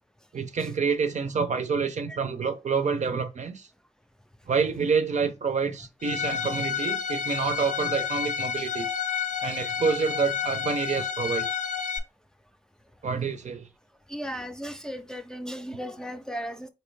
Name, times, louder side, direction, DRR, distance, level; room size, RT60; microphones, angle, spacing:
voice 1, 0.3-3.7 4.5-8.9 9.4-11.5 13.0-13.7, right 5 dB, 70° right, 0.6 m, -28 dB
Bowed string instrument, 6.0-12.0, left 7 dB, 80° left, 0.6 m, -30 dB
voice 2, 14.1-16.7, equal, 5° left, 0.4 m, -36 dB
4.2 x 2.8 x 3.2 m
wide cardioid pair, 85°, 13 cm